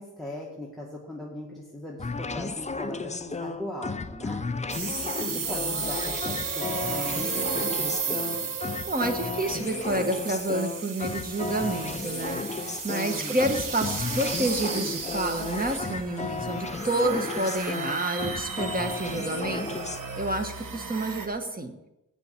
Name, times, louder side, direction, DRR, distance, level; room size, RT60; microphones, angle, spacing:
voice 1, 0.0-4.5 5.0-8.6 13.0-13.4, left 1 dB, ahead, -4 dB, 1.7 m, -39 dB
sound 1, 2.0-20.0, left 4 dB, 20° left, 0.5 m, -34 dB
sound 2, 4.7-21.3, right 5 dB, 85° right, 1.2 m, -34 dB
voice 2, 8.9-19.6 20.2-21.7, right 2 dB, 25° right, 5 dB, 1.4 m, -29 dB
8.9 x 7.1 x 8.5 m, 0.92 s
wide cardioid pair, 115°, 32 cm